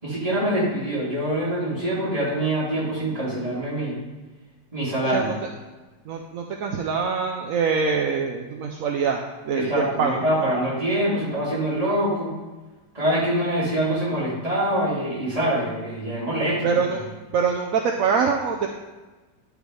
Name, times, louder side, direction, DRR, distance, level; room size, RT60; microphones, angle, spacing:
voice 1, 0.0-4.0 4.7-5.3 9.5-12.3 12.9-16.8, right 1 dB, 20° right, -7 dB, 2.8 m, -24 dB
voice 2, 6.1-10.2 16.6-17.1 17.3-18.7, right 5 dB, 65° right, 2 dB, 0.9 m, -24 dB
10.5 x 5.3 x 4.7 m, 1.2 s
omnidirectional pair, 2.0 m